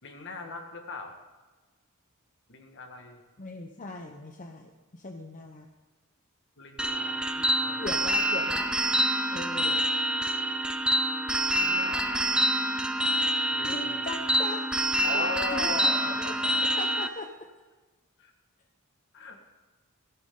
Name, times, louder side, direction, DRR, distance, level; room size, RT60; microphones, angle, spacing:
voice 1, 0.0-1.2 2.5-3.2 6.6-8.2 11.5-12.3 13.5-14.1 15.0-16.7 18.2-18.3 19.1-19.4, left 3 dB, 60° left, 4 dB, 1.9 m, -39 dB
voice 2, 3.4-5.7 7.8-8.7 9.3-9.9 13.6-14.7 15.1-16.1 16.8-17.3, left 2 dB, 40° left, 3 dB, 0.9 m, -39 dB
sound 1, 6.8-17.1, right 1 dB, 5° right, 0.6 m, -27 dB
17.0 x 16.5 x 3.9 m, 1.3 s
head